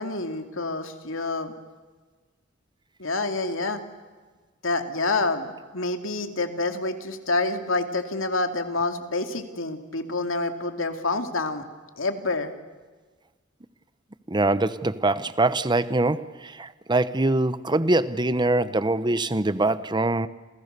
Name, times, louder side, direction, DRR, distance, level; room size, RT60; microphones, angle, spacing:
voice 1, 0.0-1.5 3.0-3.8 4.6-11.6 12.0-12.5, left 3 dB, 80° left, 2.6 m, -27 dB
voice 2, 14.3-20.3, right 2 dB, 25° right, 1.0 m, -23 dB
29.5 x 28.5 x 6.8 m
head